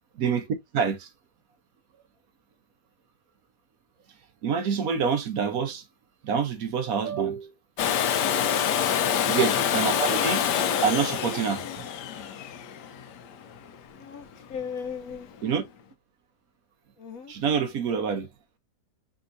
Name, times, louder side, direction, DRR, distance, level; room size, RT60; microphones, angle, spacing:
voice 1, 0.7-1.1 4.4-5.8 6.2-7.5 9.3-10.4 10.8-11.6 15.4-15.6 17.3-18.3, right 6 dB, 65° right, 1.1 m, -26 dB
Domestic sounds home sounds, 7.8-13.6 15.5-15.6, left 8 dB, 90° left, 1.3 m, -26 dB
voice 2, 8.5-8.8 14.0-15.3 17.0-17.3, left 7 dB, 65° left, 1.0 m, -37 dB
5.3 x 2.8 x 2.5 m
omnidirectional pair, 1.8 m